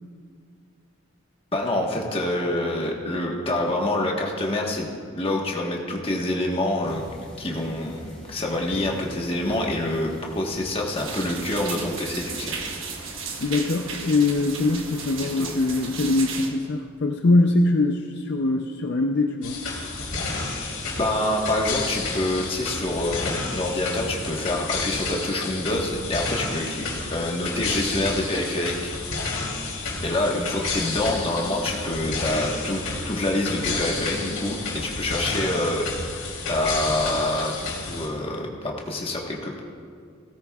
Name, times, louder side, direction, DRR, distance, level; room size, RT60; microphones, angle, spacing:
voice 1, 1.5-7.0 7.4-12.6 15.2-15.6 21.0-26.8 27.1-28.9 30.0-35.8 36.5-39.6, left 1 dB, 25° left, -1 dB, 1.3 m, -26 dB
sound 1, 6.8-12.6, equal, 5° left, 2.4 m, -43 dB
sound 2, 10.9-16.5, right 5 dB, 65° right, 1.2 m, -34 dB
voice 2, 13.4-19.6, left 2 dB, 50° left, 3 dB, 0.5 m, -22 dB
sound 3, 19.4-38.1, left 3 dB, 75° left, 3.1 m, -31 dB
17.0 x 14.0 x 2.4 m, 2.2 s
head